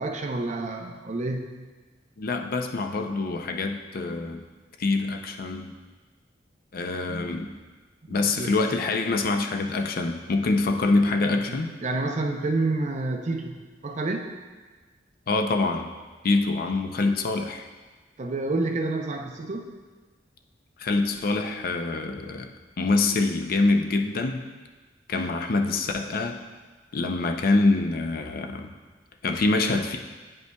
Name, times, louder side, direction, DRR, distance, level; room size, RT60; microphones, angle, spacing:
voice 1, 0.0-1.6 8.1-8.6 11.5-14.3 18.2-19.7, right 2 dB, 40° right, 3 dB, 0.6 m, -29 dB
voice 2, 2.2-4.4 4.8-5.7 6.7-7.5 8.1-11.7 15.3-15.9 16.2-17.7 20.8-22.5 22.8-24.4 25.1-26.4 26.9-28.7 29.2-30.0, left 3 dB, 55° left, 5 dB, 0.5 m, -25 dB
9.3 x 5.4 x 2.2 m, 1.3 s
head